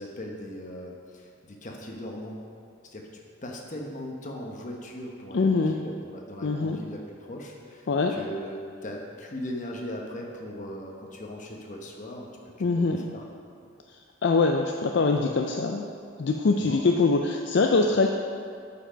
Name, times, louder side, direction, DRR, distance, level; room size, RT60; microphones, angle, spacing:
voice 1, 0.0-2.3 2.8-13.2 16.6-16.8, equal, 40° left, 0 dB, 1.0 m, -39 dB
voice 2, 5.3-5.8 6.4-6.8 7.9-8.2 12.6-13.1 14.2-15.9 16.2-18.1, left 3 dB, 55° left, 3 dB, 0.4 m, -23 dB
8.5 x 5.8 x 5.1 m, 2.4 s
head